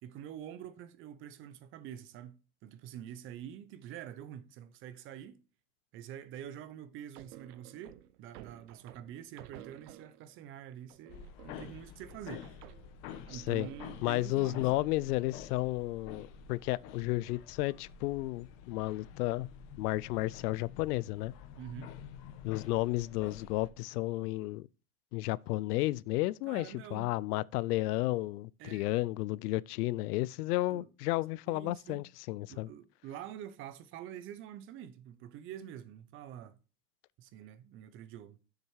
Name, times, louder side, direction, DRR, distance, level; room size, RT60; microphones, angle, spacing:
voice 1, 0.0-5.4 5.9-12.5 13.3-14.6 21.6-21.9 26.5-27.1 28.6-28.9 30.7-30.9 31.5-32.1 32.5-36.6 37.2-38.4, right 10 dB, 30° right, 0.5 m, -46 dB
sound 1, 7.1-10.4 10.9-14.1, right 13 dB, 80° right, 0.9 m, -54 dB
sound 2, 11.1-23.7, left 8 dB, 45° left, 1.1 m, -49 dB
voice 2, 13.3-13.7 14.0-19.5 19.8-21.3 22.4-24.7 25.1-32.7, left 18 dB, 85° left, 0.6 m, -32 dB
7.4 x 6.7 x 4.6 m
supercardioid pair, 150°, 45 cm